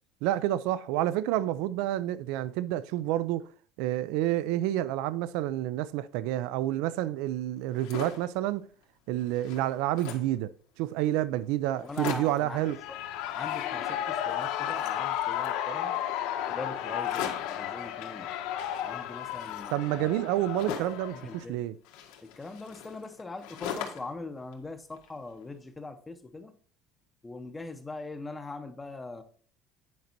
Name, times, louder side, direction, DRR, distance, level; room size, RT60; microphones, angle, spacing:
voice 1, 0.2-3.4 3.8-8.7 9.1-10.5 10.8-12.8 19.7-21.7, right 14 dB, 75° right, 0.4 m, -29 dB
sound 1, 7.6-8.3 8.8-8.9 9.1-10.4 11.0-11.1 11.3-11.4 11.7-12.5 13.2-14.0 14.3-15.6 17.0-17.6 18.6-21.1 21.8-24.2 24.5-25.4, left 9 dB, 85° left, 1.6 m, -41 dB
voice 2, 11.8-13.0 13.3-16.0 16.5-18.3 18.8-20.2 21.1-21.6 22.4-26.5 27.2-29.2, left 3 dB, 10° left, 0.6 m, -41 dB
Shout / Cheering, 12.5-21.4, left 11 dB, 70° left, 1.1 m, -33 dB
9.4 x 5.2 x 4.4 m
cardioid pair, 175°, 0 cm